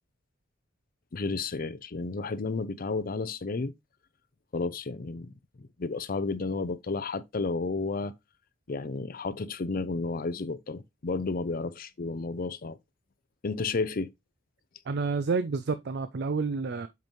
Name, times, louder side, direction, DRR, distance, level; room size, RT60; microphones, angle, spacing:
voice 1, 1.1-3.7 4.5-8.1 8.7-12.8 13.4-14.1, left 3 dB, 45° left, 0.6 m, -32 dB
voice 2, 14.9-16.9, right 4 dB, 55° right, 0.5 m, -29 dB
7.7 x 5.2 x 3.0 m
head